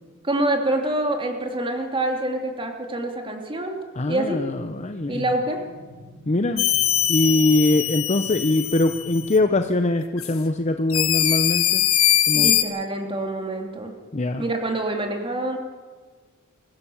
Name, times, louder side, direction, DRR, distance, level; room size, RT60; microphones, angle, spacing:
voice 1, 0.2-3.8 4.1-4.4 5.1-5.6 12.3-13.9 14.4-15.6, right 1 dB, 25° right, 3 dB, 2.8 m, -26 dB
voice 2, 4.0-5.3 6.3-6.7 7.1-11.9 12.3-12.5 14.1-14.4, left 2 dB, 35° left, 7 dB, 0.7 m, -22 dB
sound 1, 4.4-9.4, equal, 80° right, 4.7 m, -46 dB
sound 2, 6.6-9.4 10.2-10.3 10.9-12.6, left 12 dB, 75° left, 1.6 m, -22 dB
24.5 x 16.0 x 7.2 m, 1.4 s
head